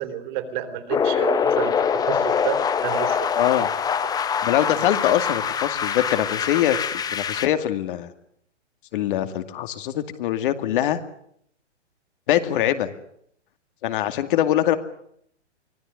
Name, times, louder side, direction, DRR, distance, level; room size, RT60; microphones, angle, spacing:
voice 1, 0.0-1.7 2.0-3.3, right 11 dB, 40° right, 10 dB, 3.5 m, -30 dB
sound 1, 0.9-7.5, left 7 dB, 10° left, 0.9 m, -24 dB
voice 2, 3.3-3.7 4.4-8.1 8.9-11.0 12.3-12.9 13.8-14.8, left 11 dB, 45° left, 9 dB, 2.2 m, -23 dB
24.5 x 16.5 x 9.8 m, 0.70 s
hypercardioid pair, 130°, 35 cm